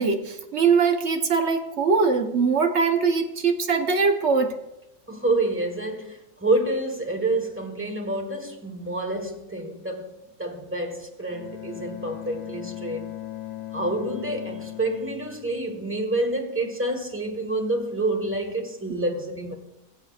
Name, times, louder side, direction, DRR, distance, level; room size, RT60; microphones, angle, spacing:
voice 1, 0.0-4.5, right 5 dB, 55° right, 1.2 m, -22 dB
voice 2, 5.1-13.1 13.7-19.5, right 2 dB, 10° right, 1.2 m, -28 dB
Bowed string instrument, 11.3-16.3, left 15 dB, 35° left, 0.8 m, -38 dB
20.0 x 7.6 x 2.4 m
omnidirectional pair, 1.5 m